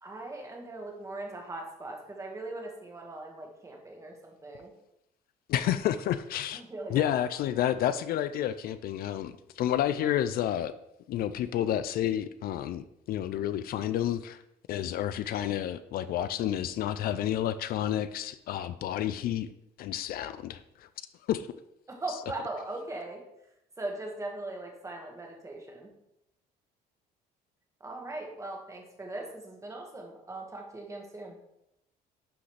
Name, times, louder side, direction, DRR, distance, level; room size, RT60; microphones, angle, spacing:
voice 1, 0.0-4.7 6.5-7.1 7.3-7.4 21.9-23.2 23.8-25.9 27.8-31.3, right 2 dB, 20° right, 1 dB, 1.6 m, -40 dB
voice 2, 5.5-6.6 6.9-10.7 11.1-14.4 14.7-19.5 19.8-20.9 21.3-21.5 22.1-22.2, left 11 dB, 60° left, 13 dB, 0.4 m, -30 dB
11.5 x 4.0 x 3.2 m, 0.82 s
cardioid pair, 110°, 17 cm